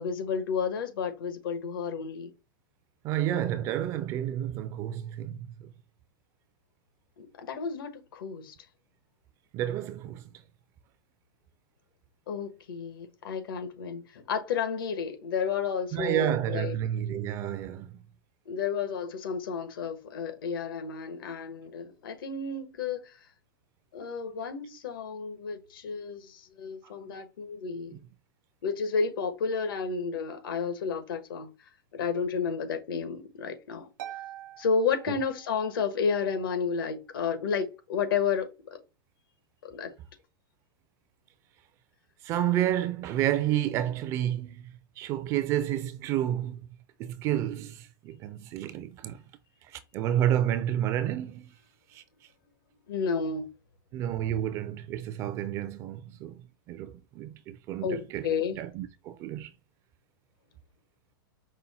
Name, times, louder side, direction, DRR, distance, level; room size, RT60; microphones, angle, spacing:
voice 1, 0.0-2.3 7.2-8.5 12.3-16.8 18.5-23.2 23.9-28.0 28.6-31.5 31.9-33.9 34.6-38.5 39.6-39.9 52.9-53.5 57.8-58.6, left 5 dB, 75° left, 1.2 m, -31 dB
voice 2, 3.0-5.7 9.5-10.2 15.9-18.0 42.2-44.7 45.0-46.6 47.0-49.2 49.7-51.5 51.9-52.0 53.9-56.4 56.7-58.3 58.6-59.5, right 11 dB, 25° right, 0.4 m, -30 dB
Harp, 34.0-35.9, right 12 dB, 65° right, 0.9 m, -44 dB
5.4 x 2.1 x 4.2 m
supercardioid pair, 160°, 12 cm